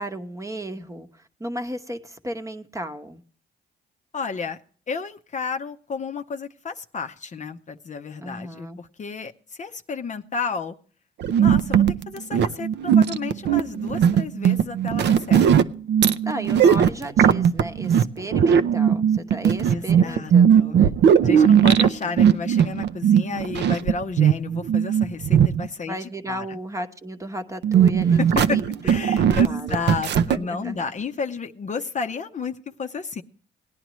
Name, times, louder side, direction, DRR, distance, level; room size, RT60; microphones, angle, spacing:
voice 1, 0.0-3.2 8.2-8.8 16.2-20.9 21.7-22.2 25.9-28.6 29.2-29.8 30.1-30.9, right 1 dB, 15° right, 1.0 m, -34 dB
voice 2, 4.1-4.6 4.9-9.3 9.6-10.8 11.4-15.7 19.7-20.8 21.2-26.6 28.1-33.2, left 5 dB, 40° left, 0.7 m, -32 dB
sound 1, 11.2-25.7 27.6-30.4, right 8 dB, 60° right, 0.6 m, -18 dB
18.0 x 10.0 x 3.1 m
cardioid pair, 90°, 20 cm